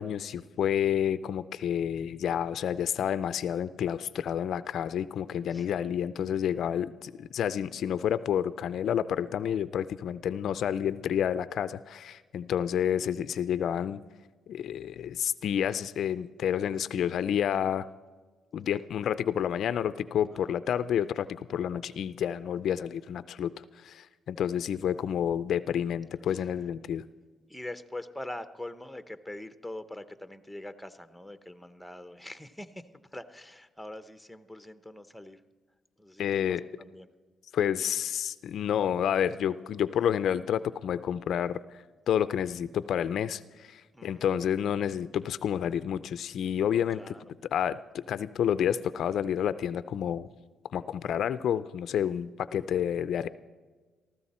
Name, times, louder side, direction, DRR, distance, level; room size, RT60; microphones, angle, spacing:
voice 1, 0.0-14.0 14.5-17.9 18.5-27.0 36.2-36.6 37.5-41.6 42.1-47.1 47.5-50.3 50.7-53.3, left 9 dB, 70° left, 14 dB, 0.4 m, -29 dB
voice 2, 5.5-5.9 20.3-20.5 26.3-26.4 27.5-32.9 33.1-35.4 36.0-36.6 36.9-37.1 43.9-44.2 46.9-47.2, left 1 dB, ahead, 11 dB, 0.8 m, -43 dB
18.5 x 14.5 x 4.3 m, 1.4 s
cardioid pair, 90°, 0 cm